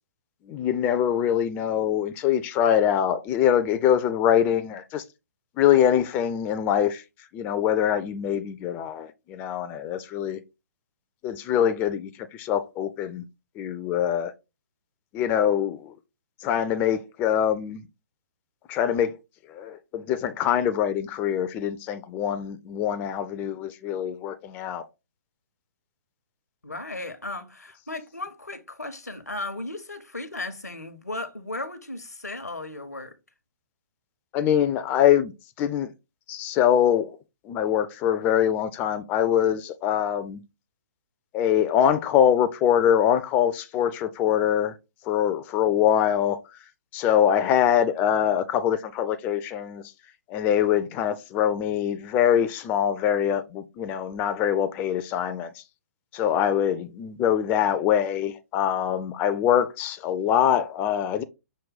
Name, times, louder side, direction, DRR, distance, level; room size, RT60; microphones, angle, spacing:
voice 1, 0.5-5.0 5.6-7.0 7.3-10.4 11.2-13.2 13.6-14.3 15.1-15.9 16.4-17.8 18.7-19.1 19.5-24.8 34.3-35.3 35.6-35.9 36.3-37.2 37.5-40.4 41.3-44.7 45.1-46.4 46.9-49.8 50.3-55.5 56.1-61.2, left 9 dB, 20° left, 0.3 m, -23 dB
voice 2, 26.6-33.2, left 2 dB, 90° left, 0.8 m, -35 dB
6.0 x 2.2 x 3.9 m
figure-of-eight pair, 125°, 8 cm